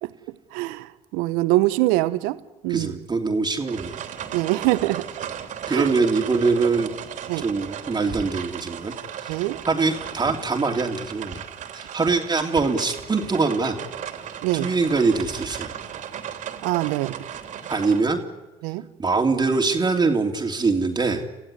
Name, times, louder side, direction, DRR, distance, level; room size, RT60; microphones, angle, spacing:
voice 1, 0.5-2.4 2.6-3.0 4.3-5.1 5.7-5.9 7.3-7.4 9.3-9.6 14.4-14.7 16.6-17.2 18.6-18.8, right 18 dB, 75° right, 15 dB, 1.1 m, -23 dB
voice 2, 2.7-4.0 5.7-6.9 7.4-8.9 9.2-11.4 11.7-13.8 14.6-15.7 17.7-18.2 19.0-21.2, right 4 dB, 30° right, 3 dB, 3.0 m, -23 dB
sound 1, 3.6-18.0, right 9 dB, 60° right, 3.3 m, -36 dB
30.0 x 15.5 x 9.9 m, 1.1 s
hypercardioid pair, 60°, 15 cm